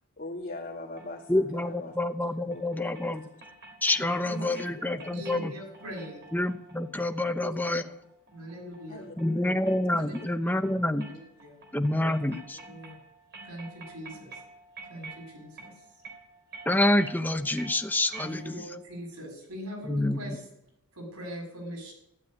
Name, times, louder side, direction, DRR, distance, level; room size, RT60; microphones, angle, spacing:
voice 1, 0.2-3.4 4.4-4.6 5.0-5.1 8.9-9.5 9.9-10.0 12.0-12.1, left 2 dB, 40° left, -3 dB, 2.4 m, -42 dB
sound 1, 1.0-18.8, right 3 dB, 50° right, 3.4 m, -50 dB
voice 2, 1.3-3.3 3.8-5.5 6.3-7.9 9.2-11.1 11.7-12.6 16.7-18.6 19.9-20.4, left 1 dB, 10° left, 6 dB, 0.9 m, -27 dB
voice 3, 3.9-6.2 7.4-7.6 8.3-9.1 10.0-10.1 10.4-10.6 11.1-11.6 12.6-13.0 13.4-14.4 14.9-15.8 18.2-20.5 20.9-21.9, equal, 85° right, 2 dB, 6.6 m, -42 dB
13.5 x 11.5 x 8.7 m, 0.83 s
head